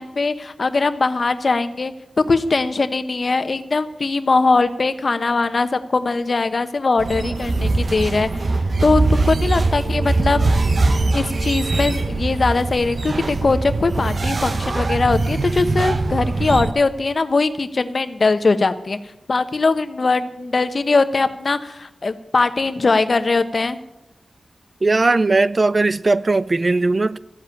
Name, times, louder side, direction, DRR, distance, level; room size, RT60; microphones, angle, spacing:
voice 1, 0.0-8.5 8.8-10.5 11.1-19.0 19.3-23.8, left 3 dB, 55° left, 1.0 m, -20 dB
sound 1, 7.0-16.7, right 3 dB, 55° right, 0.9 m, -21 dB
voice 2, 24.8-27.2, right 3 dB, 40° right, 0.4 m, -18 dB
14.0 x 7.6 x 9.2 m
wide cardioid pair, 70°, 0 cm